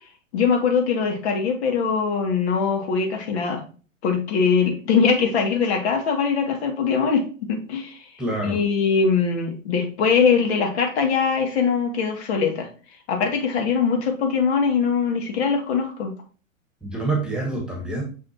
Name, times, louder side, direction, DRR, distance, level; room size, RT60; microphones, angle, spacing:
voice 1, 0.3-3.6 4.0-8.0 8.4-12.7 13.1-16.1, left 5 dB, 50° left, 2 dB, 2.6 m, -22 dB
voice 2, 8.2-8.6 16.8-18.0, right 2 dB, ahead, 1 dB, 1.8 m, -26 dB
6.5 x 6.1 x 2.9 m, 0.37 s
hypercardioid pair, 115°, 40 cm